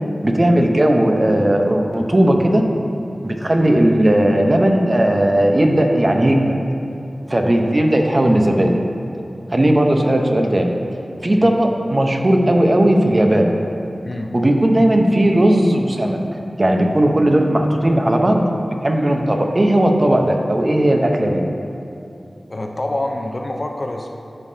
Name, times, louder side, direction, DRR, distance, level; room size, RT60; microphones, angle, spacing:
voice 1, 0.2-2.7 3.2-6.6 7.3-8.8 9.5-10.7 11.2-13.5 14.3-16.2 16.6-21.4, right 1 dB, 40° right, 2 dB, 0.9 m, -16 dB
voice 2, 22.5-24.1, left 1 dB, 45° left, 2 dB, 0.7 m, -26 dB
13.5 x 5.5 x 2.8 m, 2.6 s
wide cardioid pair, 50°, 0 cm